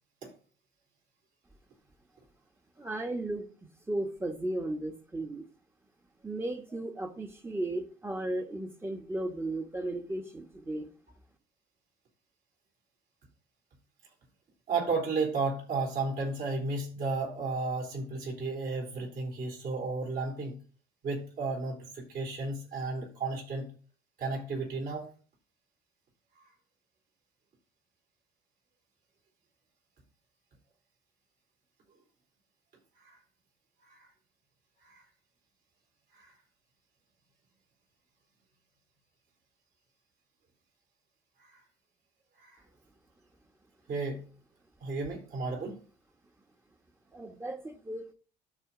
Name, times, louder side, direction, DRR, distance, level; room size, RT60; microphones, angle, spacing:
voice 1, 2.8-3.5 3.9-5.4 6.2-10.9 47.1-48.1, right 1 dB, 15° right, 1.2 m, -35 dB
voice 2, 14.7-20.6 21.0-23.6 24.2-25.1 33.0-33.2 33.9-34.1 34.8-35.0 36.1-36.3 41.4-41.6 42.4-42.6 43.9-44.3 44.8-45.8, right 3 dB, 60° right, 4.1 m, -33 dB
13.0 x 4.3 x 3.8 m
cardioid pair, 110°, 17 cm